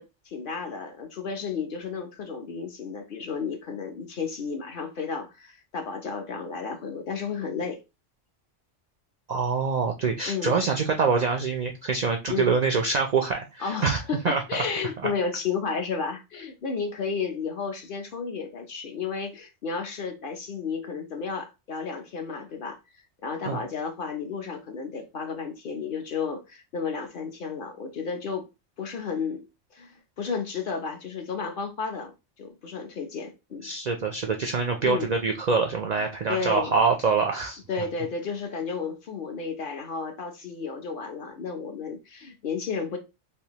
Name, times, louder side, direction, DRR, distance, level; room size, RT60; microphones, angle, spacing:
voice 1, 0.0-7.8 10.3-10.6 12.3-12.5 13.6-22.8 23.2-28.5 28.8-29.4 29.7-32.1 32.4-33.7 34.8-35.1 36.3-36.7 37.7-43.0, left 5 dB, 55° left, 0.7 m, -32 dB
voice 2, 9.3-14.0 14.2-14.4 23.5-23.6 33.6-37.6, right 5 dB, 70° right, 0.4 m, -25 dB
3.4 x 2.6 x 2.8 m
omnidirectional pair, 1.3 m